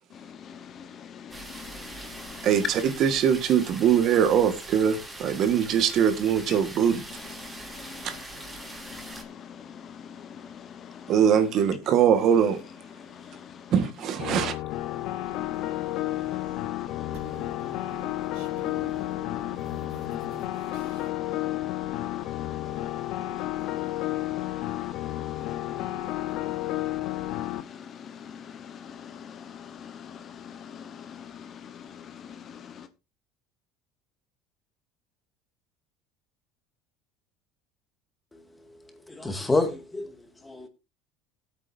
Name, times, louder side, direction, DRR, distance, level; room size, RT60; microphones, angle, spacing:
voice 1, 0.1-2.5 6.5-6.7 7.1-11.2 12.9-13.7 14.2-14.4 14.8-32.9, left 8 dB, 40° left, 1.1 m, -44 dB
sound 1, 1.3-9.2, right 1 dB, 10° right, 2.8 m, -42 dB
voice 2, 2.4-7.0 8.0-8.2 11.1-12.6 13.7-14.6, right 8 dB, 50° right, 1.5 m, -22 dB
sound 2, 14.2-27.6, left 15 dB, 60° left, 0.9 m, -32 dB
sound 3, 15.0-16.7 17.0-21.1, right 4 dB, 75° right, 4.2 m, -49 dB
voice 3, 38.3-40.7, left 3 dB, 10° left, 2.0 m, -30 dB
18.0 x 8.5 x 2.7 m
supercardioid pair, 125°, 0 cm